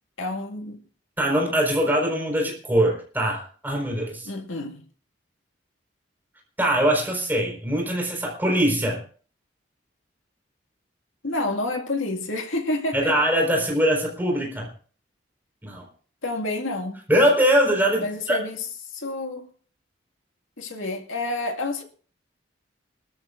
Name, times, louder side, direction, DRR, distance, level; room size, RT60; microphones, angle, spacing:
voice 1, 0.2-0.8 4.3-4.8 11.2-13.2 16.2-17.0 18.0-19.5 20.6-21.8, left 2 dB, 80° left, 2.1 m, -29 dB
voice 2, 1.2-4.3 6.6-9.0 12.9-14.7 15.6-15.8 17.1-18.4, right 1 dB, 10° right, 4.5 m, -22 dB
25.0 x 13.0 x 2.6 m
head